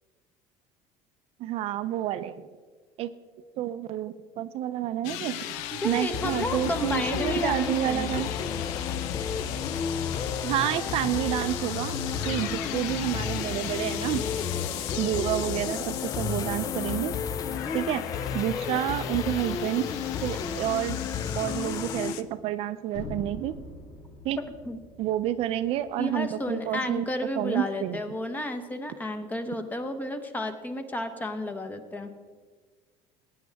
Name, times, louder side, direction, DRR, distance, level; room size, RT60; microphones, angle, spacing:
voice 1, 1.4-2.4 3.0-3.1 3.6-5.4 5.8-8.7 10.4-12.0 12.3-14.2 15.0-17.2 17.7-18.0 18.3-19.9 20.2-21.0 21.4-23.5 24.2-24.4 25.0-27.1 27.4-28.0, right 12 dB, 55° right, 12 dB, 0.5 m, -29 dB
sound 1, 5.0-22.2, left 11 dB, 85° left, 0.6 m, -37 dB
voice 2, 5.7-8.2 24.4-24.8 26.0-32.1, left 1 dB, 15° left, 8 dB, 1.0 m, -32 dB
sound 2, 6.1-22.1, left 6 dB, 30° left, 0.5 m, -32 dB
sound 3, 22.9-26.9, left 3 dB, 60° left, 1.8 m, -44 dB
19.0 x 9.3 x 3.5 m, 1.5 s
cardioid pair, 140°, 12 cm